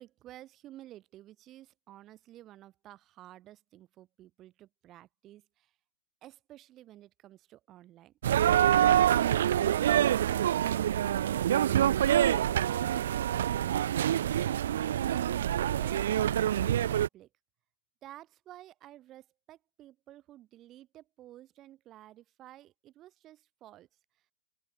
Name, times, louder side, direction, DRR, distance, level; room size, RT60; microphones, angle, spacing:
voice 1, 0.0-5.7 6.2-8.1 18.0-23.9, right 14 dB, 30° right, 3.1 m, -52 dB
sound 1, 8.2-17.1, right 11 dB, 60° right, 0.4 m, -26 dB
open air
figure-of-eight pair, 105°, 0 cm